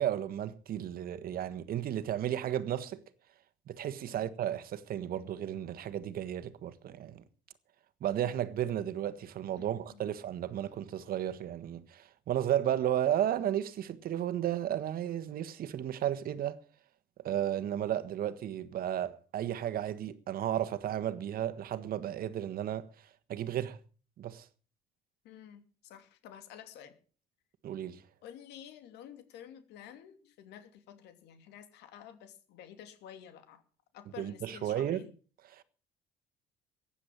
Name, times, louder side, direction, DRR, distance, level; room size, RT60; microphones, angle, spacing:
voice 1, 0.0-3.0 3.7-7.2 8.0-16.6 17.2-22.9 23.3-23.8 24.2-24.4 27.6-28.0 34.2-35.0, right 11 dB, 60° right, 1.5 m, -33 dB
voice 2, 9.6-10.2 25.2-26.9 28.2-33.6 33.9-35.1, left 9 dB, 85° left, 2.9 m, -51 dB
15.5 x 10.0 x 7.3 m
cardioid pair, 110°, 17 cm